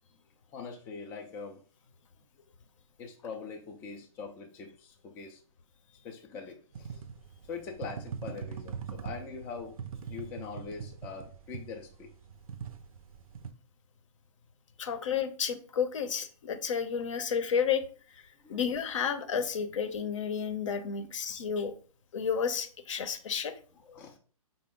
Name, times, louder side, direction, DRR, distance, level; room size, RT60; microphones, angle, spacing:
voice 1, 0.5-1.6 3.0-5.4 6.0-7.0 7.5-9.8 10.1-12.1 18.4-18.6 19.4-19.5 21.0-21.1 23.8-24.2, left 5 dB, 10° left, 2 dB, 0.3 m, -43 dB
sound 1, 6.7-13.5, right 7 dB, 70° right, 0.5 m, -42 dB
voice 2, 14.8-17.8 18.5-21.7 22.1-23.5, left 7 dB, 60° left, 9 dB, 0.7 m, -31 dB
5.1 x 2.1 x 3.6 m, 0.41 s
hypercardioid pair, 140°, 19 cm